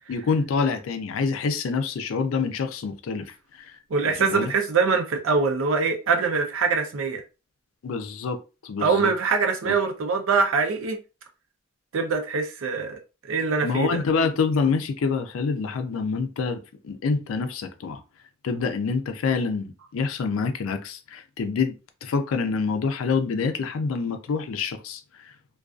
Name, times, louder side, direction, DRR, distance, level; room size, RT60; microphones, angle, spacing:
voice 1, 0.1-3.3 3.7-3.8 4.2-4.5 7.8-8.4 8.6-9.1 9.7-9.8 13.6-18.0 18.4-21.7 22.0-25.0, left 5 dB, 85° left, 0.4 m, -26 dB
voice 2, 3.9-7.2 8.8-11.0 11.9-14.0, right 4 dB, 85° right, 0.5 m, -23 dB
2.3 x 2.3 x 2.4 m
head